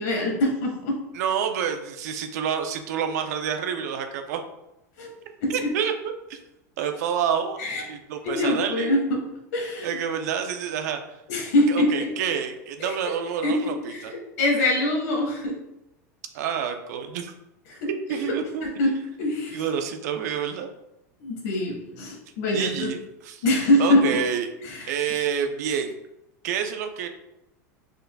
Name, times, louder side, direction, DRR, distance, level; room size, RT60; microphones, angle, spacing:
voice 1, 0.0-1.0 5.0-5.1 5.4-5.5 7.6-7.8 8.2-9.2 9.5-9.9 11.3-12.1 12.8-12.9 13.4-15.6 17.7-18.3 18.6-19.6 21.2-22.9 23.4-24.2 24.6-24.9, left 1 dB, 70° left, 0 dB, 1.6 m, -24 dB
voice 2, 1.1-4.4 5.5-5.9 6.3-6.4 6.8-7.6 7.9-9.0 9.8-11.0 11.7-14.1 16.3-17.3 18.1-18.7 19.5-20.7 22.5-23.4 23.8-24.5 24.9-26.0 26.4-27.1, right 8 dB, 70° right, 6 dB, 0.6 m, -28 dB
5.5 x 3.9 x 2.3 m, 0.89 s
hypercardioid pair, 110°, 9 cm